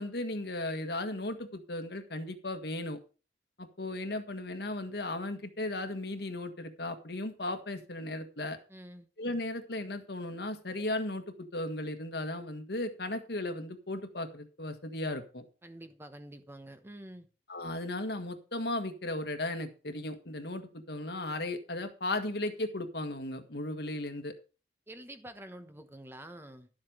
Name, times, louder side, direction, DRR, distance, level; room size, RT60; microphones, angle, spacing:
voice 1, 0.0-3.0 3.6-8.6 9.2-15.5 17.5-24.3, left 2 dB, 65° left, 1.6 m, -36 dB
voice 2, 8.7-9.1 15.6-17.3 24.9-26.7, right 1 dB, 15° right, 1.1 m, -48 dB
12.0 x 7.6 x 5.0 m
head